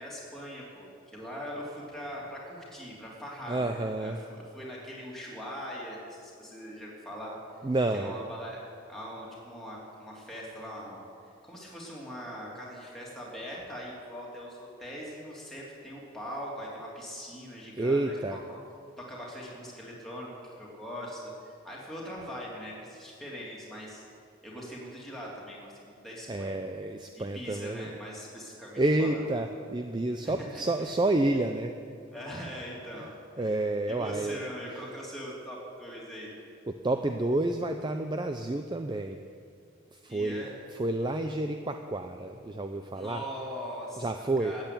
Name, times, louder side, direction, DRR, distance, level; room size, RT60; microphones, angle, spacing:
voice 1, 0.0-7.4 7.9-8.6 8.9-11.0 11.4-18.2 18.5-18.6 19.0-24.0 24.4-26.6 27.1-29.2 30.2-30.7 32.1-33.1 33.4-33.6 33.9-36.3 40.1-40.5 42.9-44.6, equal, ahead, -5 dB, 2.9 m, -41 dB
voice 2, 3.5-4.2 7.6-8.2 17.8-18.4 26.3-27.9 28.8-31.7 33.4-34.4 36.7-39.2 39.9-40.4 40.7-43.2 44.0-44.5, right 2 dB, 20° right, 6 dB, 0.4 m, -29 dB
13.5 x 9.1 x 8.5 m, 2.4 s
head